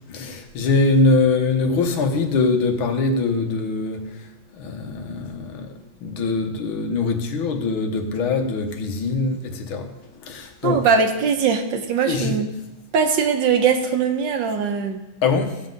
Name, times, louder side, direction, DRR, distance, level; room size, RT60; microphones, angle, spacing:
voice 1, 0.1-4.1 4.5-9.9 10.2-10.9 12.0-12.4 15.2-15.6, left 3 dB, 85° left, 1.9 m, -22 dB
voice 2, 10.6-12.5 12.9-15.0, right 6 dB, 70° right, 1.6 m, -20 dB
15.5 x 7.6 x 3.9 m
omnidirectional pair, 2.2 m